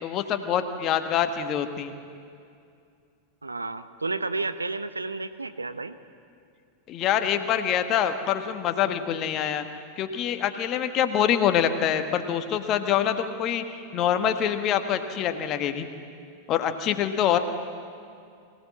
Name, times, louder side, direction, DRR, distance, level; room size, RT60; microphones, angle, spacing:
voice 1, 0.0-1.9 6.9-9.6 10.0-13.6 13.9-15.9 16.5-17.4, left 9 dB, 35° left, 8 dB, 1.4 m, -25 dB
voice 2, 3.4-6.0, right 3 dB, 80° right, 12 dB, 0.8 m, -31 dB
23.5 x 16.5 x 7.4 m, 2.4 s
figure-of-eight pair, 90°, 0 cm